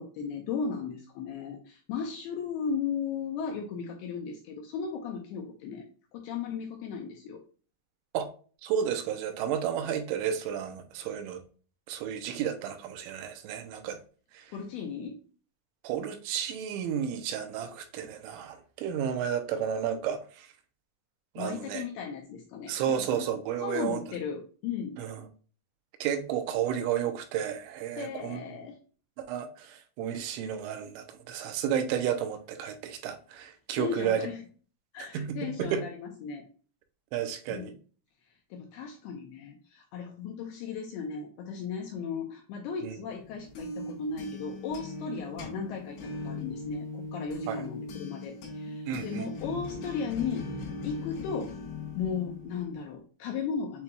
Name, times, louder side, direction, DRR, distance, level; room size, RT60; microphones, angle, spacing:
voice 1, 0.0-5.8 6.1-7.4 14.5-15.2 21.4-23.3 23.6-25.0 28.0-28.8 33.8-34.4 34.9-36.4 37.5-37.7 38.5-50.5 50.8-51.5 52.0-53.8, left 6 dB, 80° left, 1 dB, 2.3 m, -36 dB
voice 2, 8.6-11.4 11.9-14.0 14.3-14.4 15.8-20.5 21.4-21.8 22.7-24.0 25.0-25.2 26.0-28.4 29.3-34.3 35.1-35.8 37.1-37.7 42.8-42.9 47.5-47.6 48.9-49.3, right 9 dB, 85° right, 7 dB, 3.0 m, -32 dB
sound 1, 43.2-52.9, left 2 dB, 65° left, 2.8 m, -40 dB
7.9 x 2.9 x 2.2 m, 0.39 s
omnidirectional pair, 5.3 m